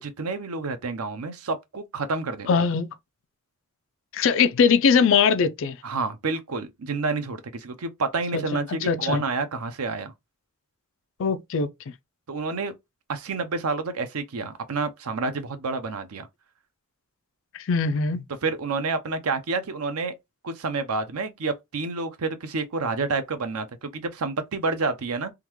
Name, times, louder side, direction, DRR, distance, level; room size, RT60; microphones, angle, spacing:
voice 1, 0.0-2.5 5.8-10.1 12.3-12.7 13.1-16.3 18.4-20.1 20.4-25.3, right 3 dB, 90° right, 0.6 m, -29 dB
voice 2, 2.5-2.9 4.1-5.8 8.3-8.4 8.8-9.2 11.2-11.7 17.5-18.2, left 6 dB, 60° left, 0.4 m, -21 dB
3.6 x 2.2 x 3.0 m
head